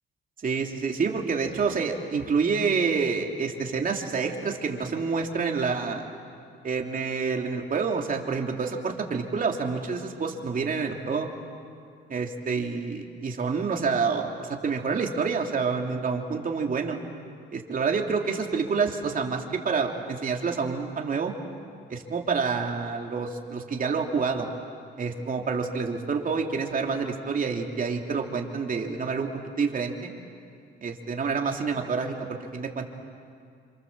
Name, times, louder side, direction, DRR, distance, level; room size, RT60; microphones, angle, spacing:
voice 1, 0.4-6.1 6.6-11.3 12.1-17.0 17.5-21.3 21.9-24.5 25.0-29.3 29.6-30.1 30.8-32.1 32.5-32.9, right 5 dB, 45° right, 2 dB, 3.1 m, -28 dB
28.0 x 26.0 x 7.4 m, 2.4 s
cardioid pair, 90°, 20 cm